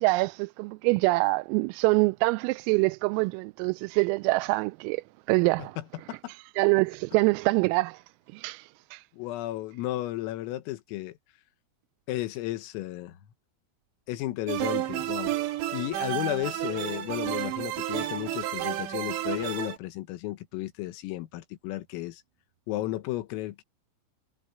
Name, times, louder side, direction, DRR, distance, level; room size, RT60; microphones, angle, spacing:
voice 1, 0.0-5.8 6.1-8.0 8.3-9.0, right 25 dB, 90° right, 3.2 m, -25 dB
voice 2, 5.6-6.3 9.1-11.2 12.1-13.2 14.1-15.4 15.7-22.2 22.7-23.6, left 16 dB, 85° left, 4.0 m, -33 dB
sound 1, 14.5-19.8, right 13 dB, 70° right, 3.4 m, -31 dB
omnidirectional pair, 5.9 m